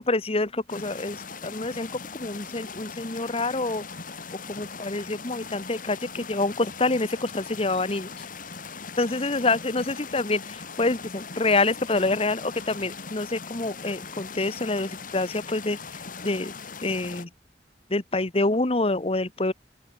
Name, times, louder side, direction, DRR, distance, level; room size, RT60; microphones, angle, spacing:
voice 1, 0.0-3.8 4.5-8.2 9.0-15.8 16.2-16.5 16.8-17.3 17.9-19.5, left 2 dB, 35° left, 1.3 m, -27 dB
sound 1, 0.7-17.2, left 5 dB, 50° left, 2.2 m, -40 dB
open air
head